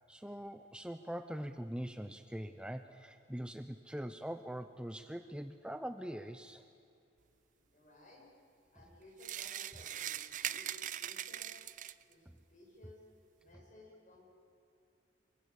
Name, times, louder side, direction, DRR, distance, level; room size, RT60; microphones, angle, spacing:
voice 1, 0.1-6.6, equal, 5° right, 9 dB, 0.7 m, -43 dB
voice 2, 7.5-8.2 8.7-10.7 11.0-11.5 12.0-13.0 13.4-14.3, left 1 dB, 45° left, -1 dB, 7.9 m, -58 dB
sound 1, 9.2-12.1, right 11 dB, 45° right, 0.6 m, -41 dB
26.5 x 24.0 x 8.5 m, 2.5 s
head